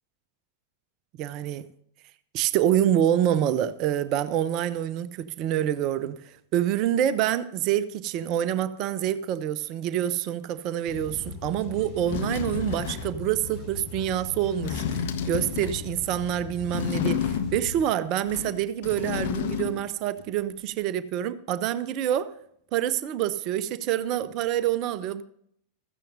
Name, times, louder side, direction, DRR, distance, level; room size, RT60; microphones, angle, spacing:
voice 1, 1.2-1.6 2.3-22.3 22.7-25.2, right 11 dB, 40° right, 0.7 m, -27 dB
sound 1, 10.8-17.8, left 4 dB, 20° left, 5.1 m, -39 dB
sound 2, 11.6-11.7 12.1-13.2 14.5-15.9 16.7-17.8 18.2-19.9 20.2-20.3, left 8 dB, 55° left, 1.2 m, -30 dB
15.5 x 14.0 x 2.6 m
figure-of-eight pair, 90°, 0 cm